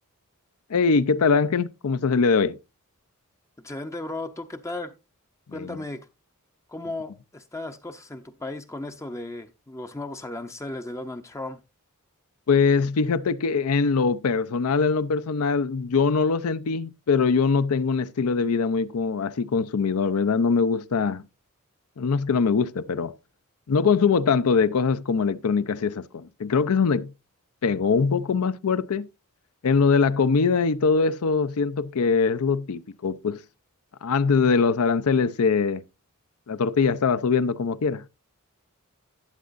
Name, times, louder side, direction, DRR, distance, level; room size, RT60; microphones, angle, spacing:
voice 1, 0.7-2.6 5.5-5.8 12.5-21.2 22.0-23.1 23.7-27.1 27.6-29.1 29.6-33.4 34.0-35.8 36.5-38.1, left 5 dB, 80° left, 0.5 m, -22 dB
voice 2, 3.6-4.9 5.5-6.1 6.7-11.6, left 2 dB, 15° left, 0.5 m, -35 dB
11.5 x 8.5 x 2.5 m
head